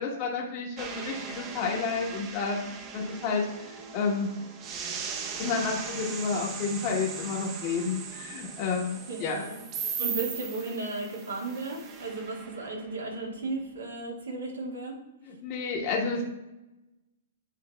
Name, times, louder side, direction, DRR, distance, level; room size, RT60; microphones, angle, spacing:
voice 1, 0.0-2.6 2.9-4.3 5.4-9.4 15.2-16.2, left 4 dB, 40° left, -2 dB, 1.1 m, -30 dB
sound 1, 0.8-13.8, right 6 dB, 35° right, 0.7 m, -39 dB
voice 2, 9.1-9.6 10.0-15.0, right 3 dB, 90° right, 0 dB, 1.7 m, -35 dB
9.3 x 4.6 x 2.3 m, 0.98 s
hypercardioid pair, 130°, 0 cm